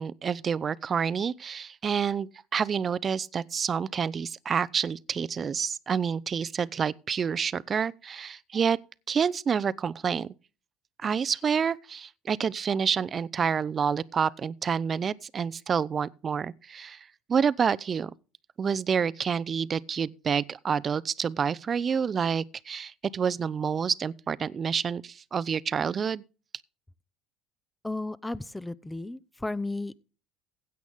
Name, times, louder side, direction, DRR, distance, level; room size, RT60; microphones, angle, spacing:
voice 1, 0.0-8.8 9.1-10.3 11.0-18.1 18.6-26.2, right 6 dB, 35° right, 0.6 m, -28 dB
voice 2, 27.8-30.0, left 2 dB, 10° left, 0.7 m, -34 dB
16.0 x 8.3 x 3.6 m
supercardioid pair, 90°, 0 cm